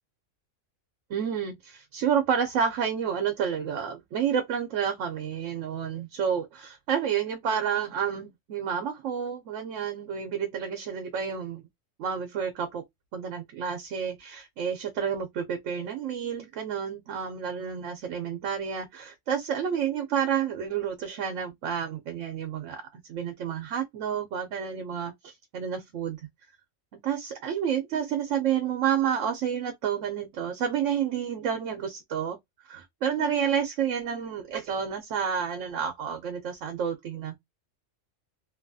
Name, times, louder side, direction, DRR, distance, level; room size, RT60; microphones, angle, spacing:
voice 1, 1.1-11.7 12.0-12.8 13.1-26.2 27.0-32.4 32.7-37.4, right 8 dB, 75° right, 0.9 m, -30 dB
2.8 x 2.3 x 2.6 m
omnidirectional pair, 1.3 m